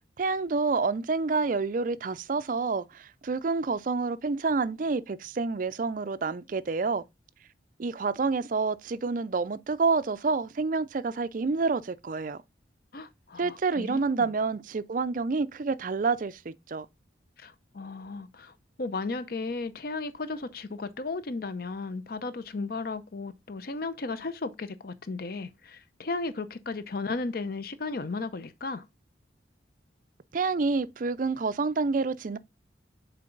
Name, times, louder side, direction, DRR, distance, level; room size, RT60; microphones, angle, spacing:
voice 1, 0.2-7.0 7.8-12.4 13.4-16.9 30.3-32.4, right 4 dB, 45° right, 0.4 m, -28 dB
voice 2, 12.9-14.3 17.4-28.8, left 3 dB, 50° left, 0.6 m, -35 dB
6.8 x 4.6 x 3.8 m
head